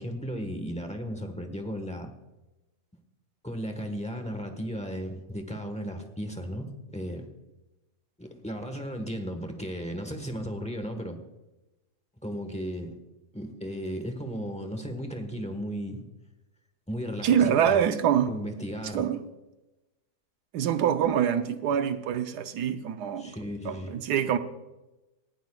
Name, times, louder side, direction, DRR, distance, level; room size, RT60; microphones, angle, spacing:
voice 1, 0.0-2.1 3.4-7.3 8.2-11.2 12.2-12.9 13.3-16.0 16.9-17.8 18.3-19.0 23.2-23.9, equal, 5° left, 5 dB, 1.1 m, -35 dB
voice 2, 17.2-18.3 18.9-19.2 20.5-23.3 23.6-24.4, right 9 dB, 80° right, 9 dB, 1.3 m, -25 dB
18.5 x 14.5 x 2.4 m, 1.0 s
omnidirectional pair, 1.7 m